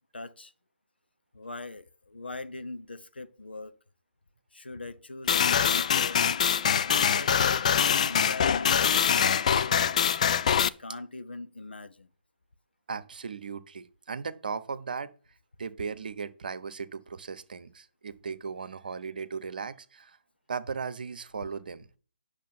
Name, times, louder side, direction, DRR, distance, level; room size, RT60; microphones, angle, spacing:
voice 1, 0.1-0.5 1.3-3.7 4.5-6.3 6.6-9.9 10.6-12.1, left 3 dB, 70° left, 1.1 m, -41 dB
sound 1, 5.3-10.7, left 8 dB, 40° left, 0.5 m, -24 dB
voice 2, 12.9-15.1 15.6-20.2 20.5-21.9, right 5 dB, 55° right, 1.0 m, -37 dB
10.5 x 6.4 x 5.7 m
figure-of-eight pair, 135°, 6 cm